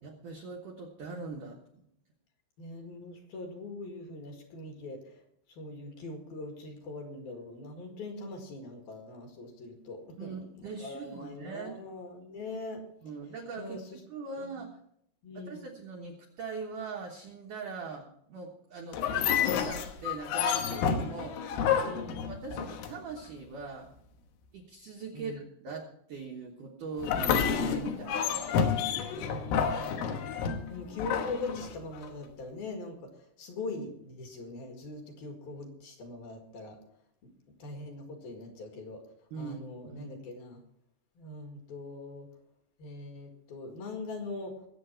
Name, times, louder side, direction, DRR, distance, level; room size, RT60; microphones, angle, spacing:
voice 1, 0.0-1.6 10.2-11.8 13.0-13.8 14.1-14.8 15.3-19.0 19.5-21.5 22.3-23.9 24.5-29.0 39.3-40.1, right 4 dB, 80° right, 1 dB, 1.8 m, -41 dB
voice 2, 2.6-5.2 5.5-12.8 13.6-14.0 14.4-14.5 15.2-15.6 21.8-22.2 25.1-25.4 29.1-30.3 30.7-33.1 33.4-36.8 37.5-39.0 39.4-40.6 41.2-42.3 42.8-44.5, left 2 dB, 55° left, 3 dB, 3.2 m, -42 dB
sound 1, 18.9-23.2 27.0-32.1, left 7 dB, 75° left, 3.5 m, -30 dB
21.0 x 8.2 x 4.5 m, 0.73 s
omnidirectional pair, 5.8 m